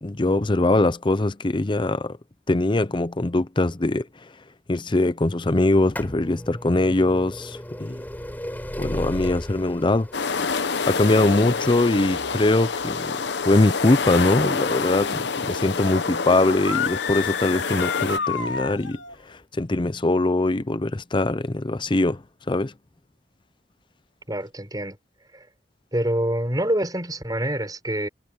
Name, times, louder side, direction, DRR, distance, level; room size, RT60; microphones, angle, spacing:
voice 1, 0.0-2.2 2.5-4.1 4.7-8.0 8.8-10.1 10.9-13.2 13.4-19.0 19.3-22.7, left 2 dB, 25° left, 0.6 m, -22 dB
sound 1, 5.6-17.3 18.1-18.2 19.1-19.2 19.4-19.5, equal, 10° left, 3.9 m, -37 dB
sound 2, 10.1-18.2, left 5 dB, 65° left, 0.9 m, -27 dB
sound 3, 16.5-19.2, left 7 dB, 90° left, 2.7 m, -29 dB
voice 2, 24.3-25.0 25.3-25.5 25.9-28.1, right 1 dB, 20° right, 5.1 m, -26 dB
head